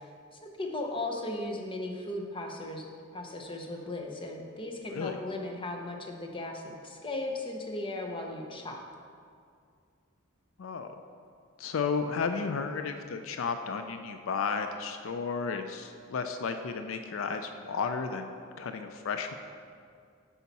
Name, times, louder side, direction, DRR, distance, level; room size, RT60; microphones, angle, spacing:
voice 1, 0.4-2.9 3.1-8.8, left 2 dB, 25° left, 2 dB, 0.7 m, -36 dB
voice 2, 10.6-10.9 11.6-18.3 18.6-19.3, left 5 dB, 75° left, 7 dB, 0.4 m, -33 dB
8.3 x 5.7 x 4.1 m, 2.3 s
head